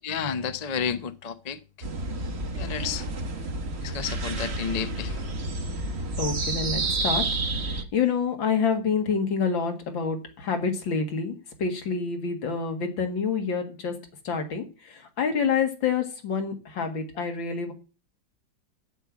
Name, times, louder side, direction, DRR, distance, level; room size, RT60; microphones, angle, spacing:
voice 1, 0.0-1.6 2.6-3.1 3.8-5.2, left 7 dB, 45° left, 0.5 m, -31 dB
sound 1, 1.8-7.8, right 2 dB, 40° right, 1.2 m, -30 dB
voice 2, 6.2-14.0 14.2-17.7, left 5 dB, 85° left, 2.6 m, -28 dB
7.9 x 7.7 x 8.4 m
omnidirectional pair, 2.0 m